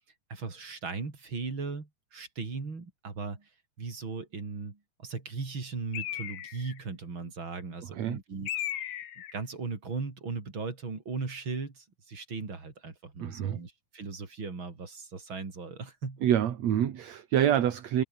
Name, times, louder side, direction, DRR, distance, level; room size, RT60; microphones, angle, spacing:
voice 1, 0.3-3.5 3.8-8.7 9.3-16.2, right 4 dB, 35° right, 4.8 m, -38 dB
Bird, 5.9-6.8 8.5-9.4, left 11 dB, 70° left, 2.9 m, -36 dB
voice 2, 13.2-13.6 16.2-18.0, right 10 dB, 60° right, 2.6 m, -26 dB
omnidirectional pair, 3.9 m